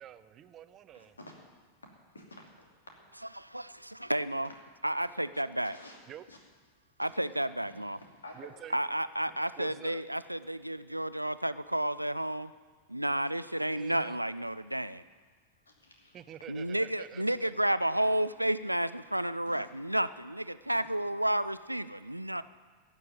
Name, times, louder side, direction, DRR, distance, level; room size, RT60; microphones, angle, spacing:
voice 1, 0.0-1.2 6.1-6.3 8.4-8.8 9.6-10.0 13.8-14.2 16.1-17.7, right 10 dB, 30° right, 13 dB, 0.6 m, -48 dB
voice 2, 0.9-1.3 2.1-2.7 5.7-6.0 6.3-6.4 7.0-7.1 7.7-8.5 15.7-16.2 19.4-19.6 20.7-20.8, left 1 dB, 75° left, 1 dB, 2.8 m, -51 dB
voice 3, 3.4-4.5 4.8-5.8 7.0-8.0 8.7-12.5 12.9-15.0 16.5-22.4, right 1 dB, 85° right, 15 dB, 0.4 m, -31 dB
15.5 x 6.9 x 9.2 m, 1.5 s
figure-of-eight pair, 90°, 0 cm